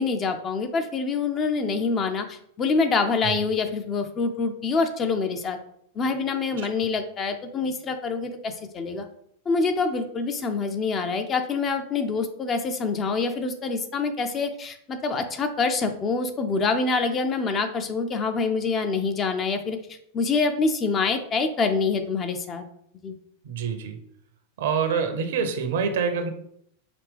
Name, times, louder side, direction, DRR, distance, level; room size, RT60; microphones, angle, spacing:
voice 1, 0.0-5.6 6.0-9.1 9.5-19.8 20.1-22.6 23.0-23.1, left 4 dB, 25° left, 6 dB, 0.5 m, -26 dB
voice 2, 23.4-24.0 24.6-26.3, right 6 dB, 55° right, 7 dB, 0.6 m, -26 dB
5.0 x 2.9 x 3.3 m, 0.70 s
figure-of-eight pair, 90°, 0 cm